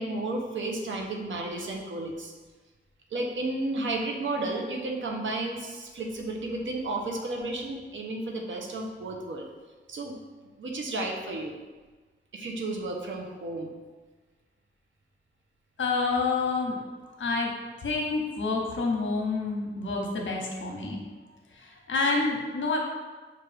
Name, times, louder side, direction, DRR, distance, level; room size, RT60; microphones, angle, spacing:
voice 1, 0.0-2.3 3.1-9.4 9.9-10.2 10.6-11.6 12.3-13.7, right 2 dB, 75° right, 1 dB, 0.7 m, -32 dB
voice 2, 15.8-16.8 17.2-17.5 17.8-21.0 21.5-22.8, left 3 dB, 70° left, 0 dB, 0.8 m, -28 dB
5.9 x 2.4 x 3.3 m, 1.3 s
wide cardioid pair, 130°, 20 cm